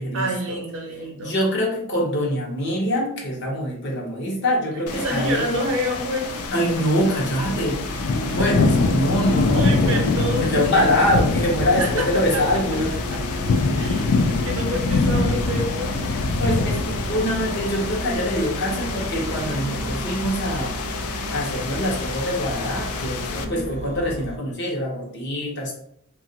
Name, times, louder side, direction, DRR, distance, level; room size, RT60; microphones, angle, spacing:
voice 1, 0.1-1.3 4.9-6.4 7.4-7.5 8.2-8.5 9.5-10.9 11.8-12.6 12.9-16.0 23.4-23.7, right 1 dB, 65° right, 1 dB, 0.7 m, -29 dB
voice 2, 1.2-5.4 6.5-10.0 10.4-12.9 16.4-20.8 21.1-25.8, equal, 55° left, -1 dB, 0.8 m, -24 dB
sound 1, 4.9-23.5, left 3 dB, 75° left, 0.3 m, -25 dB
sound 2, 7.3-24.4, right 2 dB, 30° right, 0.3 m, -34 dB
2.8 x 2.4 x 2.7 m, 0.68 s
head